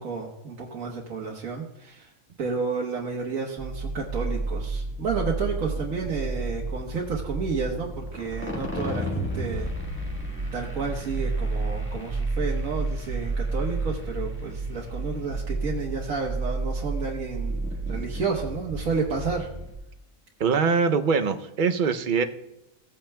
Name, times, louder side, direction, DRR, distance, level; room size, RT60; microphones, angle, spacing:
voice 1, 0.0-2.1 2.4-9.7 10.5-17.6 17.9-19.5, right 4 dB, 80° right, -2 dB, 1.6 m, -31 dB
sound 1, 3.6-19.8, right 2 dB, 10° left, 1.4 m, -31 dB
voice 2, 20.4-22.2, right 5 dB, 50° right, 8 dB, 0.6 m, -23 dB
17.0 x 8.8 x 2.2 m, 0.90 s
omnidirectional pair, 1.4 m